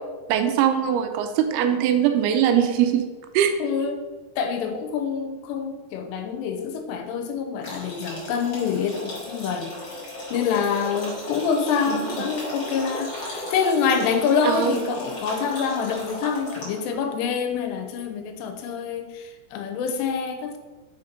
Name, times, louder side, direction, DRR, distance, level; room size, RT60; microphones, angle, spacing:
voice 1, 0.3-3.0 3.3-3.5 11.9-12.2 14.4-14.7, right 9 dB, 80° right, 7 dB, 2.4 m, -21 dB
voice 2, 3.6-4.0 4.4-9.7 10.3-20.6, left 6 dB, 85° left, 6 dB, 2.8 m, -26 dB
sound 1, 7.6-16.9, left 1 dB, 45° left, 1.3 m, -35 dB
6.3 x 4.1 x 5.1 m, 1.3 s
omnidirectional pair, 4.8 m